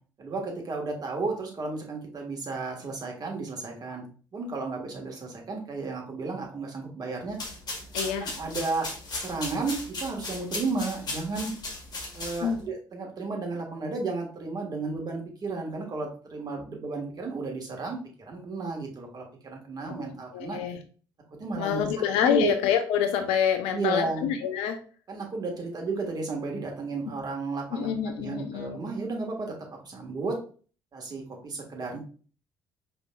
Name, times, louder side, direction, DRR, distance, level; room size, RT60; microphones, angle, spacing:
voice 1, 0.2-4.0 4.3-7.4 8.2-8.9 9.2-11.5 12.1-20.6 21.4-21.9 22.2-22.5 23.7-24.3 25.1-29.6 29.8-30.4 30.9-32.0, right 3 dB, 35° right, 1 dB, 1.5 m, -33 dB
sound 1, 7.3-12.7, left 2 dB, 40° left, 1.6 m, -36 dB
voice 2, 7.9-8.3 12.4-12.6 20.0-20.8 21.6-24.8 27.7-28.8, left 8 dB, 65° left, 7 dB, 0.6 m, -27 dB
5.1 x 3.5 x 2.3 m, 0.40 s
figure-of-eight pair, 50°, 11 cm